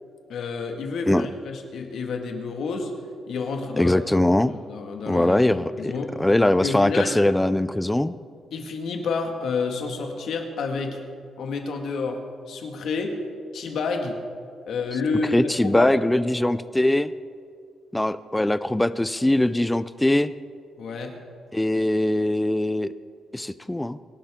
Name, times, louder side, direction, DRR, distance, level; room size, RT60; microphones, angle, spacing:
voice 1, 0.3-2.9 3.3-4.0 4.7-6.2 6.6-7.2 8.5-11.0 11.4-12.2 12.5-13.2 13.5-14.2 14.7-15.9 20.8-21.2, left 4 dB, 70° left, 3 dB, 1.8 m, -29 dB
voice 2, 3.8-4.5 5.1-5.9 6.2-8.1 15.3-17.1 17.9-20.3 21.5-22.9 23.3-24.0, left 1 dB, 10° left, 14 dB, 0.4 m, -21 dB
24.5 x 11.5 x 3.7 m, 2.2 s
cardioid pair, 130°, 0 cm